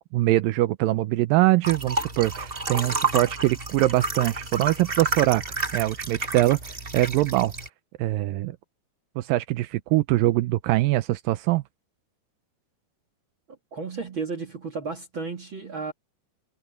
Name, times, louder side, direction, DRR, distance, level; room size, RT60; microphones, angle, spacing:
voice 1, 0.0-5.4 5.7-7.5 8.0-8.6 9.2-11.6, right 17 dB, 90° right, 2.0 m, -23 dB
sound 1, 1.6-7.7, right 3 dB, 60° right, 0.5 m, -30 dB
voice 2, 13.7-15.9, right 4 dB, 40° right, 2.3 m, -33 dB
omnidirectional pair, 4.7 m